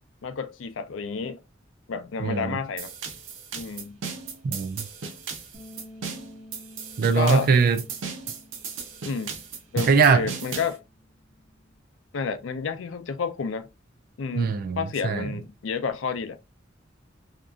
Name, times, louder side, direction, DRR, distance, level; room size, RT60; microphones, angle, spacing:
voice 1, 0.2-1.4 1.9-2.9 3.5-4.0 7.2-7.5 9.0-9.4 9.7-10.8 12.1-13.7 14.2-16.4, left 5 dB, 80° left, 0.4 m, -30 dB
voice 2, 2.2-2.6 4.4-4.9 7.0-7.8 9.8-10.3 14.3-15.4, right 5 dB, 50° right, 0.4 m, -22 dB
sound 1, 2.8-10.8, right 5 dB, 85° right, 0.6 m, -36 dB
Bass guitar, 5.5-11.8, left 1 dB, 30° left, 1.1 m, -51 dB
2.9 x 2.4 x 2.3 m
head